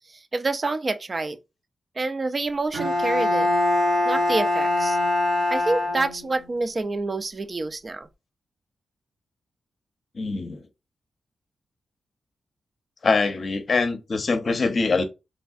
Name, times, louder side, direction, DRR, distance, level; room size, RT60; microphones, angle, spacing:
voice 1, 0.3-1.4 2.0-3.5 4.1-5.0 5.5-8.1, right 3 dB, 40° right, 0.4 m, -27 dB
Bowed string instrument, 2.7-6.5, left 2 dB, 80° right, 1.0 m, -23 dB
voice 2, 10.1-10.6 13.0-15.0, left 4 dB, 55° left, 0.6 m, -23 dB
3.2 x 2.3 x 2.5 m
cardioid pair, 55°, 0 cm